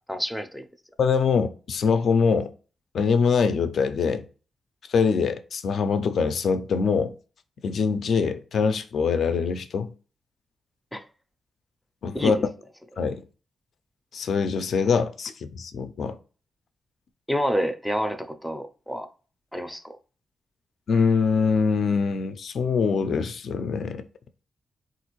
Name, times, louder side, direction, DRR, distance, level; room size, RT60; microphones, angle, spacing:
voice 1, 0.1-0.7 10.9-11.0 12.1-12.3 17.3-19.1 19.5-19.9, equal, ahead, 0.4 m, -28 dB
voice 2, 1.0-2.5 2.9-4.3 4.9-7.2 7.6-9.9 12.0-12.4 13.0-13.2 14.1-16.2 20.9-24.0, left 5 dB, 70° left, 0.4 m, -23 dB
3.6 x 2.5 x 2.9 m
wide cardioid pair, 115°, 0 cm